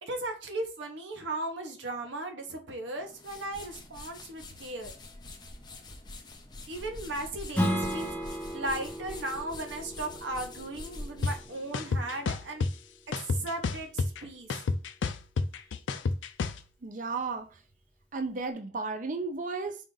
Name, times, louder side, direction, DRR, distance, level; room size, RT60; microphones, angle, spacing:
voice 1, 0.0-4.9 6.7-8.2 8.5-12.7 13.1-14.5, right 2 dB, 70° right, 0.9 m, -36 dB
sound 1, 3.0-12.3, left 2 dB, 25° left, 0.7 m, -46 dB
Strum, 7.5-12.7, equal, 5° left, 1.1 m, -35 dB
sound 2, 11.2-11.3 11.7-12.7 13.1-14.2 14.5-16.6, left 4 dB, 75° left, 0.4 m, -29 dB
voice 2, 16.8-17.5 18.1-19.8, right 4 dB, 45° right, 0.5 m, -33 dB
4.9 x 2.5 x 3.8 m
head